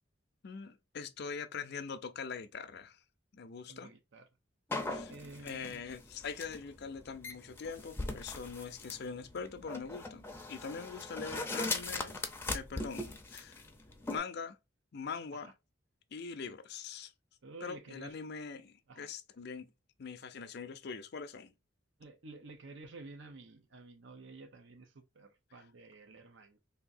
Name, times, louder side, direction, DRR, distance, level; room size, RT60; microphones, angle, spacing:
voice 1, 0.4-3.0 3.3-3.9 4.9-5.1 5.4-12.2 12.5-13.6 14.1-14.6 14.9-15.5 16.1-17.1 17.6-19.7 20.0-21.5 25.5-25.7, left 5 dB, 60° left, 0.5 m, -43 dB
voice 2, 3.7-4.2 5.1-5.8 15.3-15.5 17.4-18.1 18.9-19.1 22.0-26.6, right 3 dB, 70° right, 0.8 m, -51 dB
sound 1, 4.7-14.2, left 2 dB, 10° left, 0.6 m, -40 dB
3.5 x 2.7 x 2.5 m
head